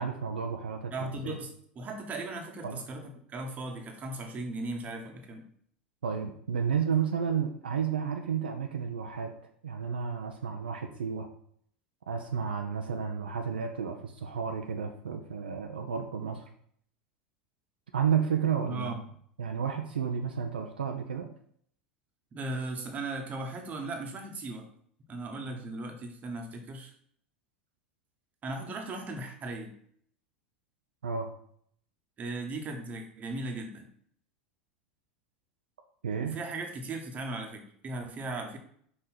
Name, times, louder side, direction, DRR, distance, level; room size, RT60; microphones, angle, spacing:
voice 1, 0.0-1.4 2.6-2.8 6.0-9.3 9.6-11.3 12.1-16.5 17.9-19.1 19.4-21.3 25.5-25.6 31.0-31.3 36.0-36.4, right 7 dB, 70° right, 4 dB, 0.6 m, -32 dB
voice 2, 0.9-5.4 18.7-19.0 22.3-24.7 25.1-26.9 28.4-29.7 32.2-33.9 36.2-38.6, right 2 dB, 30° right, 3 dB, 1.3 m, -37 dB
5.6 x 4.8 x 4.2 m, 0.63 s
figure-of-eight pair, 80°, 5 cm